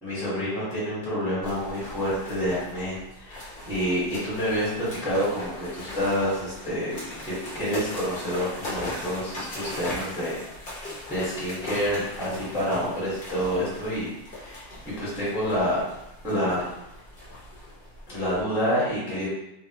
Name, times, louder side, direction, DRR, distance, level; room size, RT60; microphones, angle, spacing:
voice 1, 0.0-6.9 7.2-10.4 11.1-15.8 16.2-16.7 18.1-19.3, equal, ahead, -9 dB, 0.9 m, -28 dB
sound 1, 1.4-18.4, left 1 dB, 45° left, 0.8 m, -39 dB
3.0 x 2.3 x 2.9 m, 0.86 s
omnidirectional pair, 2.0 m